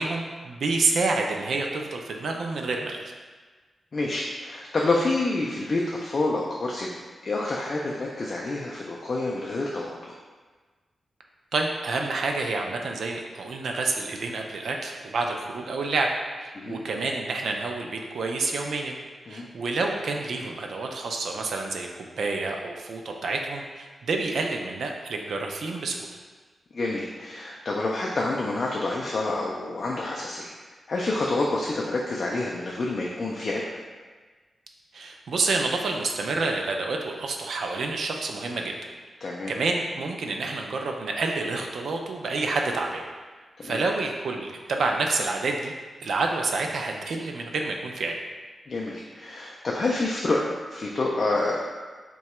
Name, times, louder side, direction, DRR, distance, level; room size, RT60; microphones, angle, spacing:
voice 1, 0.0-3.0 11.5-16.1 16.3-19.0 19.3-26.1 34.9-38.7 39.5-43.0 43.6-45.7 46.0-48.1, right 3 dB, 75° right, 2 dB, 0.4 m, -28 dB
voice 2, 3.9-7.0 7.2-9.9 16.5-16.8 19.3-19.5 26.7-30.5 30.9-33.6 39.2-39.5 43.6-43.8 48.7-50.4 50.7-51.6, left 2 dB, 45° left, -3 dB, 0.3 m, -28 dB
2.8 x 2.2 x 4.1 m, 1.4 s
wide cardioid pair, 125°, 0 cm